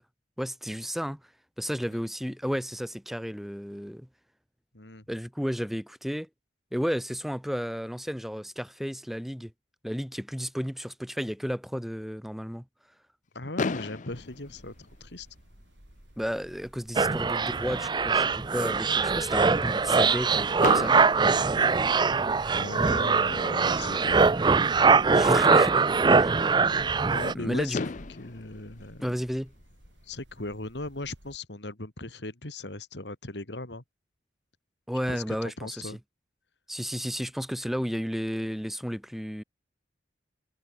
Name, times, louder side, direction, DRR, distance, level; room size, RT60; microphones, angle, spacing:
voice 1, 0.4-1.2 1.6-4.1 5.1-6.3 6.7-9.5 9.8-12.6 16.2-21.0 22.4-22.6 25.1-25.9 26.2-26.4 27.3-27.8 29.0-29.5 34.9-36.0 36.7-39.4, equal, ahead, 4.3 m, -32 dB
voice 2, 13.3-14.7 15.0-15.3 22.5-24.3 26.9-27.9 28.2-29.2 30.1-33.8 35.1-36.0, left 2 dB, 70° left, 2.8 m, -38 dB
Fireworks, 13.6-15.6 16.4-16.5 16.7-16.9 17.2-17.3 20.6-22.4 24.1-24.2 27.3-27.4 27.7-30.0, left 4 dB, 45° left, 0.5 m, -36 dB
sound 1, 14.1-31.4, equal, 85° right, 6.1 m, -55 dB
sound 2, 17.0-27.3, right 4 dB, 25° right, 0.5 m, -22 dB
head